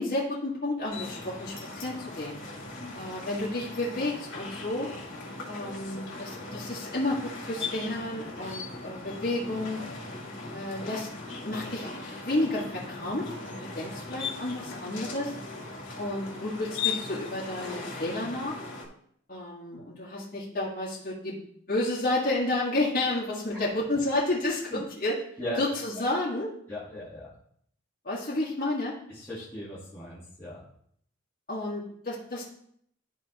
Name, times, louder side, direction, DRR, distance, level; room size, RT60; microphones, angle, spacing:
voice 1, 0.0-2.4 2.9-4.9 5.5-9.8 10.5-11.1 11.4-11.9 12.2-13.3 13.6-15.3 16.0-18.6 19.3-21.4 21.7-25.2 25.6-26.5 28.0-29.0 31.5-32.4, left 2 dB, 45° left, -7 dB, 1.7 m, -31 dB
sound 1, 0.9-18.9, left 4 dB, 70° left, 2.2 m, -38 dB
voice 2, 26.7-27.3 29.1-30.6, left 1 dB, 10° left, -10 dB, 1.5 m, -37 dB
12.5 x 4.2 x 2.9 m, 0.68 s
head